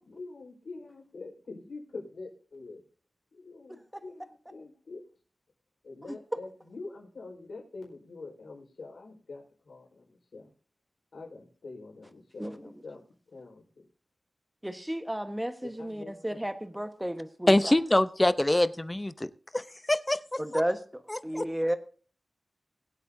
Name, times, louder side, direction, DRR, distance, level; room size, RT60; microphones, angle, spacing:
voice 1, 0.0-2.8 3.3-5.0 5.8-10.5 11.1-13.0 13.3-13.6 15.8-16.4, left 3 dB, 85° left, 0 dB, 4.5 m, -45 dB
voice 2, 12.4-12.7 14.6-17.7 20.4-21.8, equal, 10° right, 9 dB, 1.2 m, -33 dB
voice 3, 17.5-19.3 19.5-20.6 21.1-21.4, left 1 dB, 20° left, 14 dB, 0.7 m, -25 dB
21.5 x 8.3 x 2.7 m, 0.42 s
wide cardioid pair, 75°, 0 cm